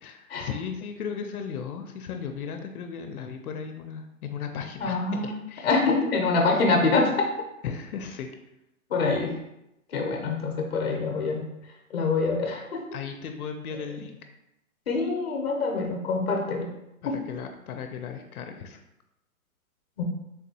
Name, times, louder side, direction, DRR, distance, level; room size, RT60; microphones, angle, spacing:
voice 1, 0.0-5.7 7.6-8.3 12.9-14.2 17.0-18.8, left 6 dB, 85° left, 5 dB, 0.6 m, -36 dB
voice 2, 4.8-5.4 5.6-7.3 8.9-9.3 9.9-11.4 11.9-12.8 14.9-16.7 17.0-17.2 20.0-20.1, left 3 dB, 45° left, 2 dB, 0.7 m, -25 dB
3.6 x 2.6 x 2.7 m, 0.86 s
hypercardioid pair, 180°, 43 cm